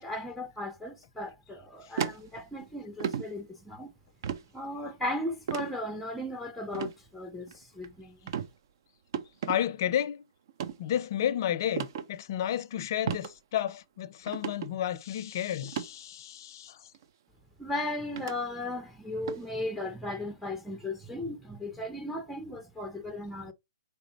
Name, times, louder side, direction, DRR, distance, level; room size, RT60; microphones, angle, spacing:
voice 1, 0.0-3.9 4.5-8.2 17.6-23.5, left 1 dB, ahead, 0.6 m, -36 dB
sound 1, 2.0-2.6 3.0-3.3 4.2-4.4 5.5-5.7 6.7-6.9 7.5-7.9 8.3-8.5 9.1-9.6 10.5-10.7 11.8-12.1 13.1-13.3 13.7-13.8 14.3-14.7 15.6-15.9 16.9-17.0 18.2-18.3 19.3-19.5, right 8 dB, 50° right, 0.6 m, -33 dB
voice 2, 9.5-10.2 10.8-16.9, left 10 dB, 45° left, 0.5 m, -32 dB
5.0 x 3.6 x 2.9 m
figure-of-eight pair, 130°, 3 cm